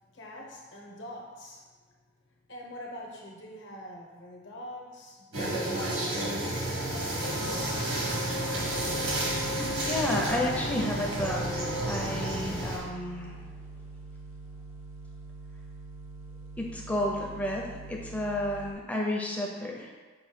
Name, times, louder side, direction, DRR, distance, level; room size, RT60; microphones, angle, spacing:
voice 1, 0.1-1.6 2.5-6.4, equal, 55° left, -1 dB, 0.8 m, -44 dB
sound 1, 5.3-12.8, right 1 dB, 90° right, 1.3 m, -31 dB
sound 2, 8.6-18.7, right 3 dB, 65° right, 0.5 m, -45 dB
voice 2, 9.6-13.4 16.6-19.9, left 1 dB, 5° left, -2 dB, 0.5 m, -31 dB
5.6 x 2.2 x 4.2 m, 1.4 s
head